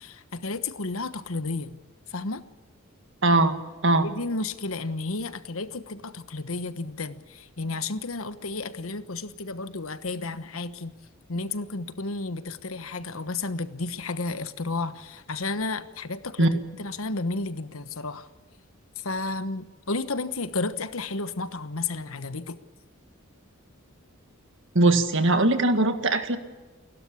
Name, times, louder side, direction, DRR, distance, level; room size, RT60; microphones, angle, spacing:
voice 1, 0.0-1.8 2.1-2.4 4.0-10.9 11.3-18.3 19.0-22.6, left 3 dB, 75° left, 12 dB, 1.2 m, -32 dB
voice 2, 3.2-3.5 3.8-4.1 16.4-16.5 24.8-26.4, right 2 dB, 60° right, 8 dB, 1.8 m, -20 dB
29.5 x 12.5 x 8.5 m, 1.2 s
head